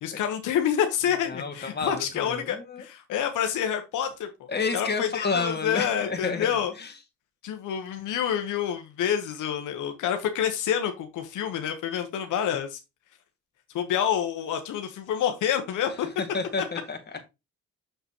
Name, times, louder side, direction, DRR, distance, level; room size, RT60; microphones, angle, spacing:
voice 1, 0.0-4.3 4.7-6.7 7.4-12.8 13.7-16.1, left 9 dB, 80° left, 5 dB, 1.1 m, -28 dB
voice 2, 1.3-2.8 4.5-6.9 16.2-17.2, left 4 dB, 35° left, 4 dB, 2.0 m, -30 dB
6.9 x 6.7 x 3.0 m, 0.23 s
cardioid pair, 90°, 30 cm